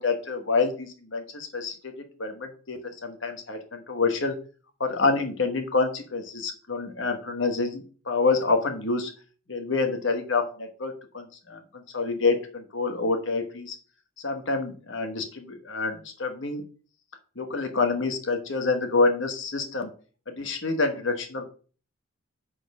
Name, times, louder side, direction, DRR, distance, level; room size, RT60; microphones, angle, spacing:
voice 1, 0.0-1.9 2.2-4.3 4.8-9.1 9.5-11.6 11.9-13.8 14.2-16.6 17.4-19.9 20.3-21.4, left 3 dB, 55° left, 5 dB, 1.3 m, -27 dB
7.7 x 4.3 x 6.0 m, 0.39 s
head